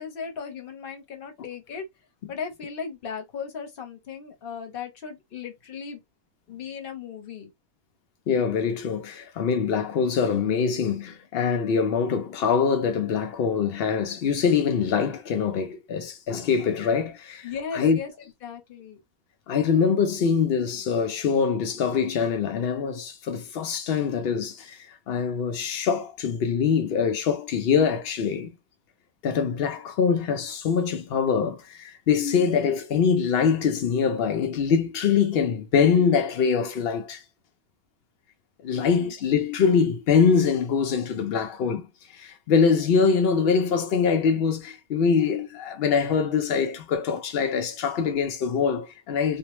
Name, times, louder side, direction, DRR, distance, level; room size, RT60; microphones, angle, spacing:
voice 1, 0.0-1.8 2.3-6.0 6.5-7.5 17.4-18.1 18.4-19.0 38.6-39.1, left 6 dB, 50° left, 0.7 m, -36 dB
voice 2, 8.3-18.0 19.5-28.5 29.2-37.2 38.6-49.4, left 6 dB, 85° left, 0.5 m, -24 dB
2.7 x 2.0 x 2.9 m
omnidirectional pair, 1.6 m